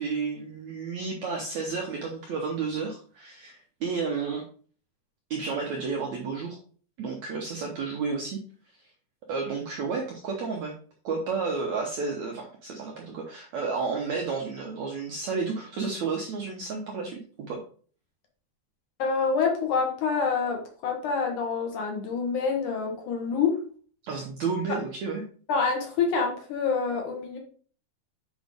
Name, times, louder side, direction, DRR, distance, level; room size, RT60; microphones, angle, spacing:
voice 1, 0.0-4.4 5.3-6.6 7.0-8.4 8.7-8.9 9.3-10.7 11.0-17.6 24.0-25.2, right 4 dB, 85° right, 1 dB, 1.6 m, -31 dB
voice 2, 19.0-23.6 25.5-27.4, left 5 dB, 60° left, 2 dB, 2.4 m, -27 dB
8.5 x 5.1 x 3.5 m, 0.43 s
omnidirectional pair, 4.8 m